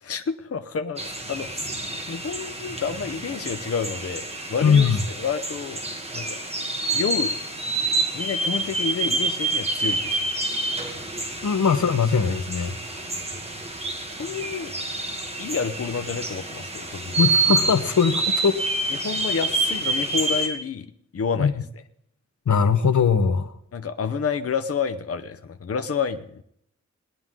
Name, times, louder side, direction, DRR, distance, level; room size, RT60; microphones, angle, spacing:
voice 1, 0.0-1.7 2.1-4.9 5.2-5.8 6.1-6.4 6.9-7.3 8.1-10.3 14.1-14.7 15.4-17.2 19.0-20.9 21.1-21.5 23.7-26.4, left 6 dB, 55° left, 9 dB, 0.7 m, -29 dB
sound 1, 1.0-20.5, right 2 dB, 20° right, 1.9 m, -28 dB
voice 2, 4.6-5.0 10.9-11.0 11.4-13.0 17.2-18.6 21.4-21.5 22.5-23.5, left 6 dB, 85° left, 11 dB, 1.1 m, -21 dB
19.0 x 10.5 x 3.7 m, 0.69 s
wide cardioid pair, 130°, 29 cm